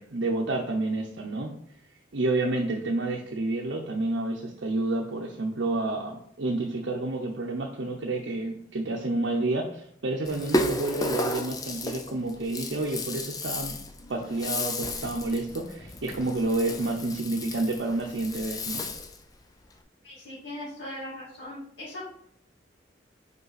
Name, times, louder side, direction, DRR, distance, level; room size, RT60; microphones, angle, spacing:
voice 1, 0.0-1.5 2.1-13.8 14.1-18.8, right 2 dB, 80° right, 0 dB, 0.7 m, -29 dB
Rattle (instrument), 10.2-19.2, left 2 dB, 20° left, 0.5 m, -33 dB
voice 2, 20.0-22.0, left 1 dB, 85° left, -10 dB, 2.5 m, -39 dB
5.6 x 4.8 x 4.1 m, 0.67 s
head